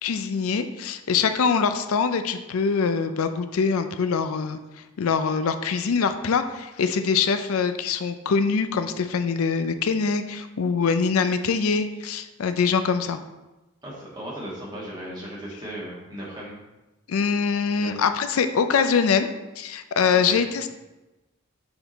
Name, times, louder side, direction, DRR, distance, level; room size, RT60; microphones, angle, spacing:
voice 1, 0.0-4.6 5.0-13.2 17.1-19.3 19.6-20.7, left 5 dB, 80° left, 10 dB, 0.4 m, -23 dB
voice 2, 13.8-16.6 17.7-17.9 20.1-20.4, right 1 dB, 20° right, -5 dB, 1.6 m, -36 dB
6.9 x 3.7 x 4.0 m, 1.1 s
head